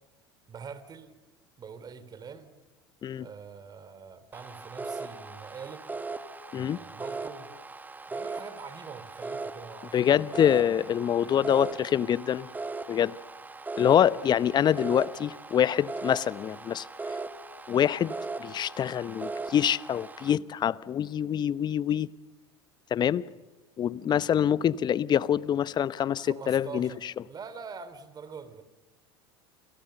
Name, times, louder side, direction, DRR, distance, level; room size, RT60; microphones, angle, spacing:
voice 1, 0.5-1.1 1.6-2.5 3.2-5.9 6.5-7.5 8.1-10.2 14.0-14.1 26.2-28.6, right 6 dB, 30° right, 3.1 m, -44 dB
sound 1, 4.3-20.3, right 3 dB, 10° right, 1.6 m, -39 dB
voice 2, 9.9-12.5 12.9-13.1 13.8-16.9 17.7-18.1 18.4-22.1 22.9-23.2 23.8-26.9, left 9 dB, 30° left, 0.8 m, -25 dB
29.0 x 29.0 x 6.9 m
figure-of-eight pair, 75°, 14 cm